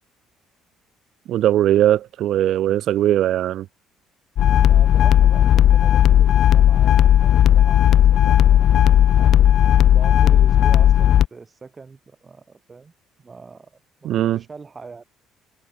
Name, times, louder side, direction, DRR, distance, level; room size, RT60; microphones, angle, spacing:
voice 1, 1.3-3.7 14.0-14.4, right 12 dB, 65° right, 0.5 m, -19 dB
sound 1, 4.4-11.3, left 11 dB, 60° left, 0.3 m, -14 dB
voice 2, 4.7-8.8 9.2-9.5 9.9-12.9 13.2-15.0, right 4 dB, 25° right, 6.5 m, -42 dB
cardioid pair, 110°, 0 cm